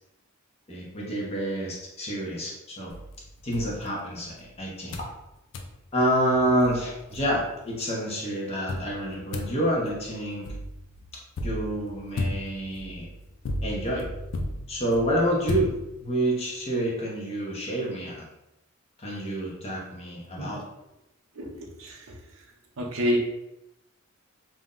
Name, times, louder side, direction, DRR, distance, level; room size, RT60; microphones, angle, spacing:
voice 1, 0.7-2.9 3.4-5.0 5.9-10.5 11.4-13.1 13.6-14.1 14.7-18.3 19.0-20.6, right 1 dB, 30° left, -4 dB, 0.7 m, -28 dB
sound 1, 2.9-4.5 4.9-5.2 5.5-5.8 6.3-6.4 6.6-7.7 8.7-16.3, left 1 dB, 65° left, 0.4 m, -35 dB
voice 2, 21.4-22.2 22.8-23.2, equal, 75° right, 0 dB, 0.6 m, -28 dB
2.6 x 2.1 x 3.6 m, 0.90 s
head